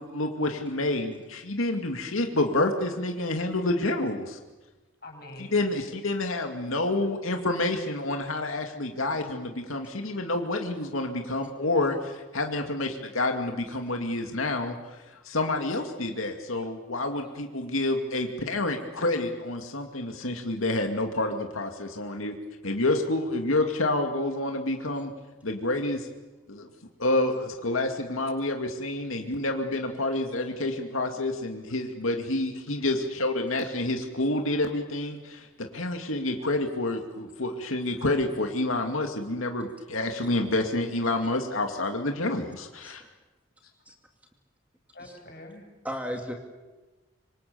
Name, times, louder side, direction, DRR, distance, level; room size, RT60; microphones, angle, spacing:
voice 1, 0.0-4.4 5.5-14.8 15.2-22.3 22.6-25.1 25.4-26.1 26.5-26.7 27.0-43.0, left 2 dB, 85° left, 4 dB, 2.4 m, -28 dB
voice 2, 5.0-5.6 7.0-7.4 11.0-11.2 15.6-15.7 16.0-16.6 17.2-17.4 24.7-24.8 43.6-43.7 44.9-45.6, left 1 dB, 50° left, 2 dB, 7.9 m, -47 dB
voice 3, 45.8-46.3, equal, 5° right, 3 dB, 2.3 m, -36 dB
26.0 x 25.5 x 7.0 m, 1.2 s
head